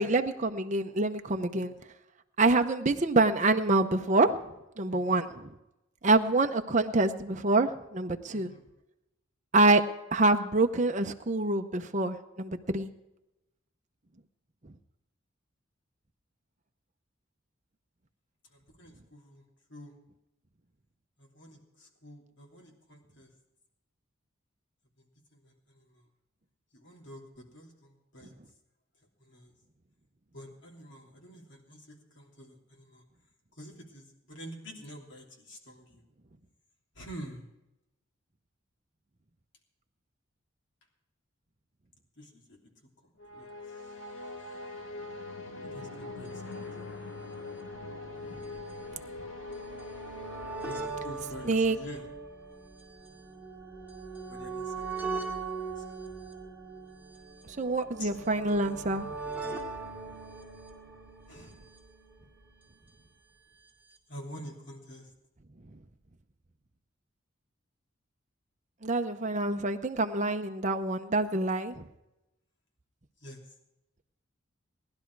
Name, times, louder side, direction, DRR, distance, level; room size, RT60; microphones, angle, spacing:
voice 1, 0.0-1.7 2.4-4.4 4.8-5.5 6.0-8.5 9.5-9.8 10.1-12.9 14.6-14.7 48.3-48.4 51.4-51.8 57.4-59.2 65.7-65.8 68.8-71.9, right 2 dB, 35° right, 6 dB, 0.8 m, -26 dB
voice 2, 4.9-5.2 8.3-8.6 18.5-19.4 19.7-19.9 21.2-23.3 25.0-26.0 26.7-27.2 27.5-28.3 29.2-29.5 30.3-33.0 33.6-36.0 36.9-37.5 42.2-42.6 43.3-43.5 45.7-46.7 50.6-52.0 54.3-55.8 58.0-58.1 61.3-61.6 64.1-65.1 73.2-73.4, equal, 60° left, 0 dB, 3.0 m, -47 dB
sound 1, 43.2-51.6, left 3 dB, 75° left, 2.2 m, -42 dB
sound 2, 46.2-46.3 46.5-46.6 47.5-62.7 63.7-63.8 63.9-64.0, right 4 dB, 10° right, 2.2 m, -41 dB
19.0 x 11.5 x 4.7 m, 0.93 s
head